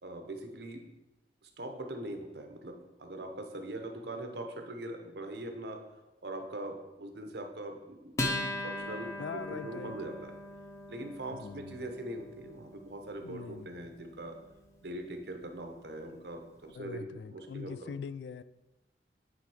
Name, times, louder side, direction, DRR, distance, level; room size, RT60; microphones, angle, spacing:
voice 1, 0.0-0.8 1.4-5.8 6.2-8.2 8.6-10.3 10.9-14.4 14.8-17.9, right 1 dB, 70° right, 5 dB, 0.9 m, -42 dB
Acoustic guitar, 8.2-15.0, left 1 dB, 15° left, 0.8 m, -40 dB
voice 2, 9.2-10.0 11.3-11.8 13.0-13.7 16.1-16.3 16.7-18.4, left 6 dB, 80° left, 15 dB, 0.3 m, -43 dB
8.8 x 3.9 x 4.8 m, 1.0 s
head